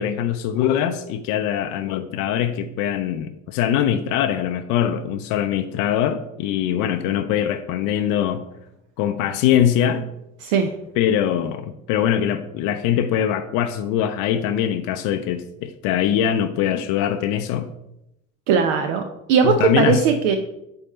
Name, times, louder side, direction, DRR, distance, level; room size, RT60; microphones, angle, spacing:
voice 1, 0.0-8.4 9.0-10.1 11.0-17.7 19.4-20.1, left 10 dB, 50° left, 8 dB, 0.6 m, -22 dB
voice 2, 18.5-20.4, right 6 dB, 60° right, 6 dB, 0.7 m, -19 dB
7.9 x 4.3 x 4.2 m, 0.87 s
figure-of-eight pair, 55°, 43 cm